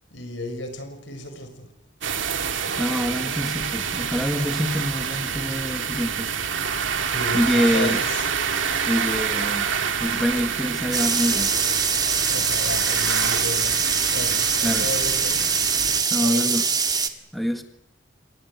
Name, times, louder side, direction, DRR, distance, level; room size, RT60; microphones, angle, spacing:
voice 1, 0.1-1.7 5.6-5.7 7.0-8.3 12.3-13.8 14.1-15.4 16.2-16.7, left 2 dB, 70° left, 7 dB, 6.5 m, -33 dB
sound 1, 2.0-16.0, right 7 dB, 80° right, 2.4 m, -27 dB
voice 2, 2.8-6.3 7.3-8.0 8.9-9.7 10.0-11.5 14.6-14.9 16.1-16.7 17.3-17.6, equal, ahead, 6 dB, 1.8 m, -25 dB
sound 2, 10.9-17.1, right 5 dB, 20° right, 1.9 m, -23 dB
27.5 x 19.5 x 8.3 m, 0.78 s
head